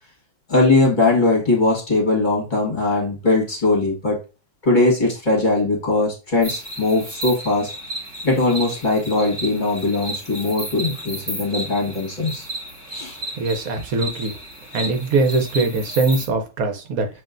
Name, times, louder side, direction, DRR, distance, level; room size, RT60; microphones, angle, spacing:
voice 1, 0.5-4.2 4.6-7.7 8.2-12.4 12.9-13.2, left 2 dB, 30° left, -3 dB, 1.7 m, -20 dB
sound 1, 6.4-16.3, right 1 dB, 30° right, 1.6 m, -33 dB
voice 2, 13.4-14.4 14.7-17.1, right 3 dB, 70° right, 4 dB, 1.2 m, -21 dB
7.5 x 2.9 x 2.5 m, 0.31 s
omnidirectional pair, 1.6 m